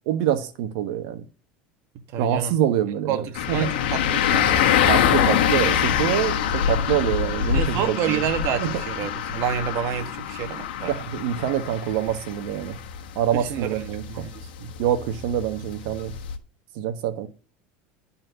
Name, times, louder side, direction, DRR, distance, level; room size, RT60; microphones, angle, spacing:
voice 1, 0.1-1.2 2.2-3.7 4.9-8.3 8.6-8.8 10.9-12.8 13.1-14.2 14.8-16.1 16.7-17.3, right 10 dB, 75° right, 1.3 m, -25 dB
voice 2, 2.1-2.5 3.1-4.6 7.5-10.9 13.3-13.8 14.1-14.7, right 9 dB, 60° right, 1.5 m, -29 dB
sound 1, 3.4-16.4, left 9 dB, 90° left, 1.3 m, -25 dB
11.0 x 4.4 x 6.8 m
supercardioid pair, 115°, 5 cm